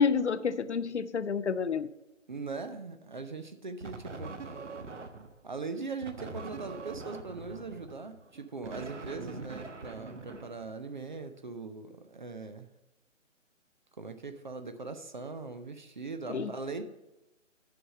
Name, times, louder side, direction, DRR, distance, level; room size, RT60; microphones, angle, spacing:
voice 1, 0.0-1.9 16.3-16.5, left 5 dB, 60° left, 14 dB, 0.6 m, -28 dB
voice 2, 2.3-4.5 5.4-12.7 14.0-16.8, right 4 dB, 40° right, 9 dB, 0.6 m, -40 dB
sound 1, 3.8-5.4 6.0-11.1, right 3 dB, 65° right, 1.1 m, -43 dB
9.4 x 4.9 x 6.5 m, 0.98 s
figure-of-eight pair, 150°, 39 cm